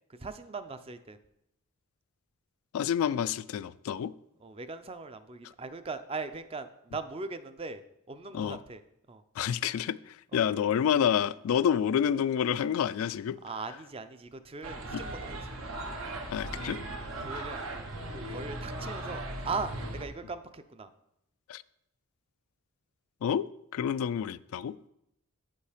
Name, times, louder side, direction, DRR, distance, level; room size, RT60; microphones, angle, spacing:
voice 1, 0.1-1.2 4.4-7.8 8.1-8.8 9.1-9.2 10.3-10.6 13.4-15.6 17.0-17.6 18.1-20.9, right 4 dB, 25° right, 11 dB, 0.4 m, -39 dB
voice 2, 2.7-4.1 8.3-8.6 9.4-13.4 14.9-15.0 16.3-16.8 21.5-21.6 23.2-23.5 23.7-24.8, left 8 dB, 80° left, 16 dB, 0.3 m, -28 dB
sound 1, 14.6-20.0, right 2 dB, 80° right, 1.1 m, -38 dB
8.3 x 5.4 x 5.0 m, 0.80 s
head